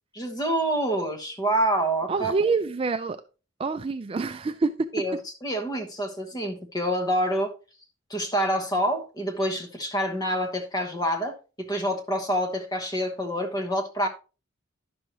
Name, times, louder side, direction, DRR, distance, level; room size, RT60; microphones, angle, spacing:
voice 1, 0.1-2.3 4.9-7.5 8.1-14.1, right 1 dB, 20° left, 1.1 m, -27 dB
voice 2, 2.1-3.2 3.6-4.8, right 4 dB, 25° right, 0.3 m, -26 dB
10.5 x 6.2 x 3.0 m
head